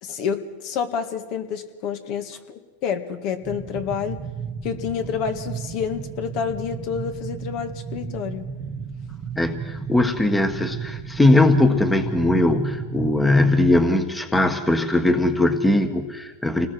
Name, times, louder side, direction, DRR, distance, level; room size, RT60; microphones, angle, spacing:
voice 1, 0.0-4.2 4.6-8.5, left 7 dB, 55° left, 7 dB, 2.0 m, -29 dB
sound 1, 3.4-13.8, right 6 dB, 25° right, 1.4 m, -33 dB
voice 2, 9.4-16.7, left 2 dB, 10° left, 7 dB, 1.5 m, -20 dB
29.0 x 20.0 x 4.7 m, 1.3 s
supercardioid pair, 120°, 0 cm